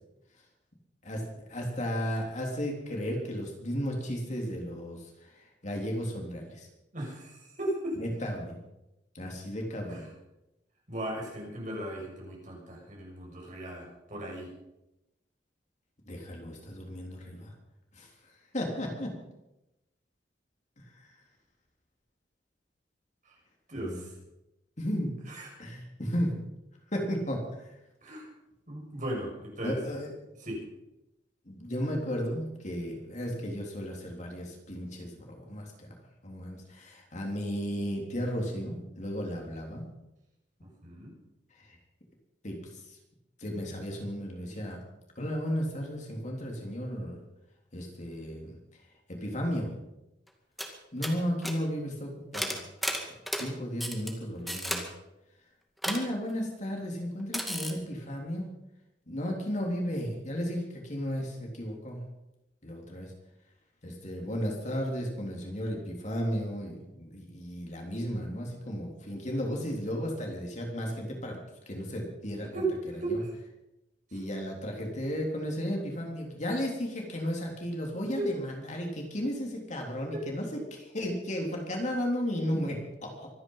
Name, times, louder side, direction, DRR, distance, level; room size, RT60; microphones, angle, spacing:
voice 1, 1.5-5.0 5.6-6.7 8.0-8.6 9.2-10.0 16.1-17.5 17.9-18.1 18.5-19.1 23.8-23.9 24.8-25.1 25.6-26.4 26.9-27.4 29.6-30.1 31.5-35.9 36.2-39.9 42.4-42.6 43.4-44.8 45.2-47.2 47.7-48.6 49.1-49.7 50.9-52.6 53.3-54.9 55.8-58.5 59.1-62.0 62.6-63.1 63.8-71.4 71.7-72.6 73.1-73.2 74.1-80.5 80.9-83.3, equal, 40° left, 0 dB, 3.6 m, -34 dB
voice 2, 6.9-8.0 9.9-10.1 10.9-14.5 23.3-23.4 23.7-24.1 25.3-25.5 28.0-28.3 28.7-29.8 30.4-30.6 40.6-41.2 72.4-73.3 74.1-74.2 78.2-78.3 80.1-80.2, right 1 dB, 45° right, -2 dB, 7.0 m, -36 dB
sound 1, 50.3-50.4 50.6-50.7 51.0-51.2 51.4-51.5 52.3-53.5 53.8-54.1 54.5-54.8 55.8-56.0 57.3-57.7, equal, ahead, 2.2 m, -32 dB
24.5 x 10.0 x 5.7 m, 0.93 s
head